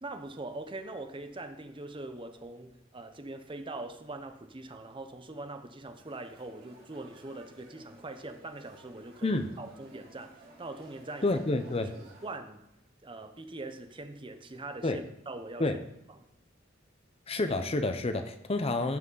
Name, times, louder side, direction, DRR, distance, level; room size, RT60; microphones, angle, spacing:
voice 1, 0.0-11.3 11.9-12.6 13.0-15.7 16.2-16.3, right 2 dB, 25° right, 0.7 m, -42 dB
sound 1, 6.0-12.4, right 2 dB, 50° right, 2.4 m, -55 dB
voice 2, 11.2-11.9 14.8-15.0 15.6-15.7 17.3-19.0, left 2 dB, 30° left, 0.7 m, -29 dB
15.0 x 6.0 x 3.9 m
head